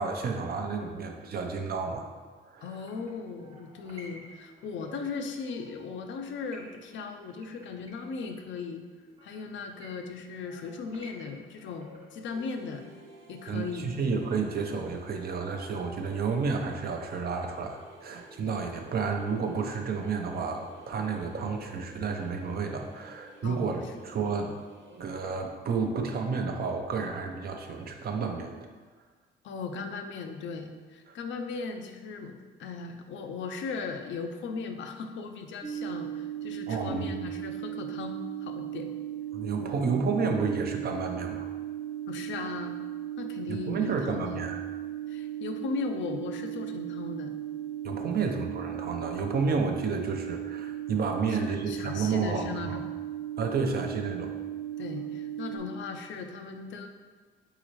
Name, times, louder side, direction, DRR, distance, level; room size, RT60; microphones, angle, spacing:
voice 1, 0.0-2.1 2.5-2.7 13.5-24.5 24.9-28.5 36.7-37.1 39.3-41.5 43.5-44.6 47.8-52.8 53.4-54.3, right 5 dB, 50° right, 3 dB, 0.6 m, -31 dB
voice 2, 2.6-8.8 9.2-12.9 13.3-14.3 23.4-23.7 29.4-38.9 39.6-39.7 42.1-42.8 43.2-44.5 45.1-47.4 48.2-48.3 51.3-52.9 54.8-56.9, left 4 dB, 70° left, 5 dB, 0.5 m, -38 dB
sound 1, 2.6-12.4, right 1 dB, 30° right, 1.0 m, -53 dB
sound 2, 12.3-25.3, right 2 dB, 80° right, 0.9 m, -53 dB
sound 3, 35.6-55.6, right 12 dB, 5° right, 0.5 m, -37 dB
4.0 x 3.8 x 3.1 m, 1.5 s
cardioid pair, 90°, 20 cm